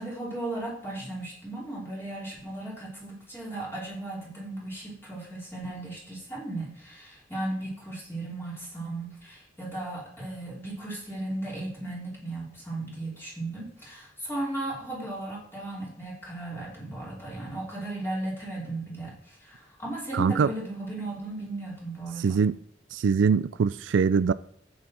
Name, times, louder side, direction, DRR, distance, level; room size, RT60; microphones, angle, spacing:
voice 1, 0.0-22.4, right 2 dB, 15° left, 3.0 m, -36 dB
voice 2, 20.1-20.5 22.2-22.6 22.9-24.3, right 5 dB, 90° right, 0.4 m, -23 dB
11.0 x 8.0 x 4.3 m
head